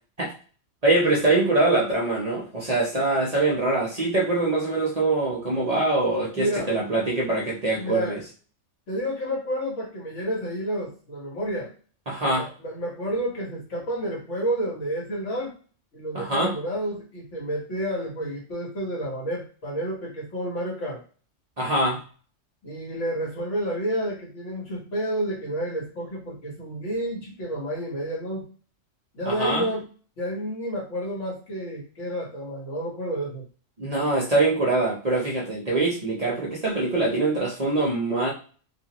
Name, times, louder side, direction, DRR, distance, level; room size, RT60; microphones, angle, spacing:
voice 1, 0.8-8.2 12.1-12.5 16.1-16.5 21.6-22.0 29.3-29.7 33.8-38.3, right 2 dB, 40° right, -3 dB, 0.7 m, -23 dB
voice 2, 6.3-6.8 7.7-8.2 8.9-11.7 12.3-15.6 15.9-21.0 22.6-28.5 29.1-29.9 30.2-33.5, equal, 75° left, -3 dB, 1.6 m, -30 dB
2.7 x 2.5 x 2.9 m, 0.40 s
omnidirectional pair, 1.3 m